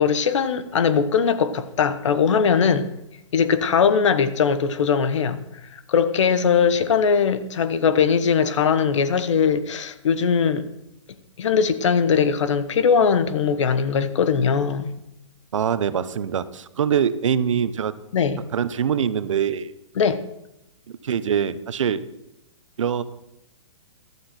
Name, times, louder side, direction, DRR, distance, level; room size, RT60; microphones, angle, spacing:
voice 1, 0.0-2.9 3.3-5.4 5.7-10.7 11.4-14.9 18.1-18.4 20.0-20.2, left 6 dB, 70° left, 1.3 m, -20 dB
voice 2, 15.5-17.9 18.5-19.7 21.0-22.0 22.8-23.0, right 8 dB, 75° right, 1.0 m, -23 dB
15.0 x 12.5 x 4.4 m
hypercardioid pair, 145°, 16 cm